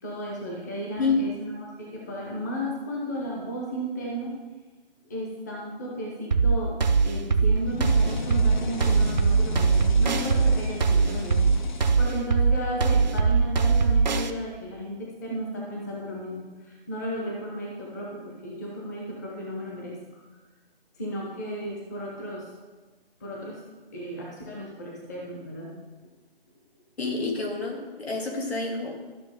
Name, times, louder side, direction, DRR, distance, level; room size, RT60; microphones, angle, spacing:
voice 1, 0.0-4.4 5.1-20.0 21.0-22.5 23.2-23.6 23.9-25.8, right 1 dB, 15° left, -3 dB, 0.9 m, -34 dB
sound 1, 6.3-14.3, right 5 dB, 45° right, 0.6 m, -21 dB
sound 2, 7.7-12.6, left 3 dB, 50° left, 0.6 m, -37 dB
voice 2, 27.0-29.0, left 4 dB, 85° left, 0 dB, 2.7 m, -28 dB
13.0 x 5.9 x 3.6 m, 1.3 s
hypercardioid pair, 165°, 30 cm